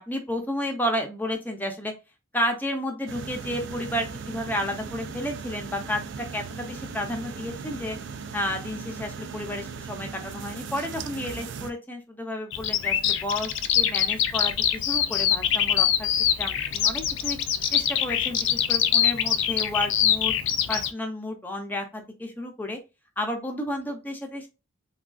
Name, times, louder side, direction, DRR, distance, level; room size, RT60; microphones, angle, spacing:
voice 1, 0.0-1.9 2.3-8.0 8.3-16.1 16.4-17.4 17.7-20.3 20.7-22.8 23.2-24.5, left 1 dB, 10° left, 3 dB, 0.5 m, -31 dB
sound 1, 3.1-11.7, right 5 dB, 60° right, 0.4 m, -38 dB
Bird vocalization bird call bird song, 12.5-20.9, left 9 dB, 65° left, 0.3 m, -24 dB
3.6 x 2.3 x 2.3 m, 0.27 s
head